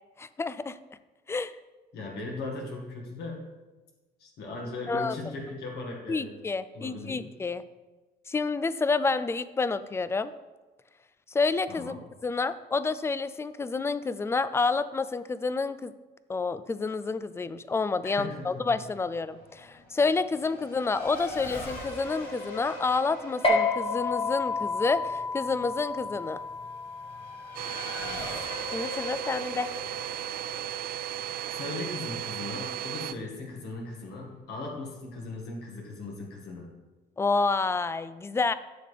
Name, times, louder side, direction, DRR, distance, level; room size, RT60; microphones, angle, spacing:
voice 1, 0.2-0.8 1.3-1.5 4.9-5.2 6.1-7.6 8.3-10.3 11.3-15.9 16.3-26.4 28.7-29.7 37.2-38.5, left 4 dB, 15° left, 15 dB, 0.3 m, -29 dB
voice 2, 1.9-3.5 4.2-6.3 6.7-7.3 11.7-12.0 18.0-18.7 28.0-28.5 31.5-36.7, left 3 dB, 75° left, -1 dB, 2.0 m, -38 dB
Race car auto racing / Accelerating revving vroom, 18.7-32.7, left 2 dB, 60° left, 2.5 m, -42 dB
sound 1, 23.4-30.2, left 3 dB, 30° left, 1.4 m, -31 dB
Domestic sounds home sounds, 27.5-33.1, right 12 dB, 60° right, 0.4 m, -35 dB
10.0 x 6.6 x 3.5 m, 1.2 s
cardioid pair, 110°, 17 cm